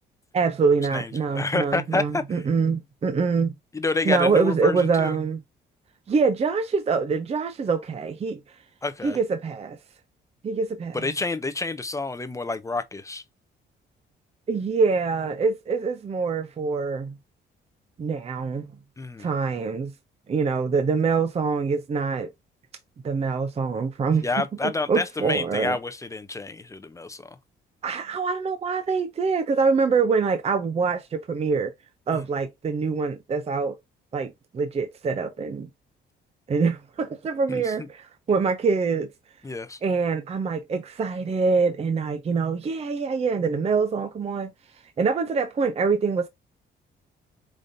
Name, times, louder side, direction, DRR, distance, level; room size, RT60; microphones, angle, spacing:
voice 1, 0.3-3.6 4.1-5.4 6.1-8.4 9.0-9.8 10.4-11.0 14.5-17.2 18.0-18.7 19.2-19.9 20.3-22.3 23.0-24.3 24.9-25.8 27.8-31.7 32.1-33.8 34.1-35.7 36.5-39.1 39.8-44.5 45.0-46.3, right 4 dB, 30° right, 0.5 m, -24 dB
voice 2, 0.9-2.4 3.7-5.1 8.8-9.2 10.9-13.2 19.0-19.3 24.1-27.3 32.1-32.2 37.5-37.9 39.4-39.8, left 3 dB, 15° left, 0.5 m, -29 dB
5.1 x 2.6 x 2.6 m
cardioid pair, 90°, 20 cm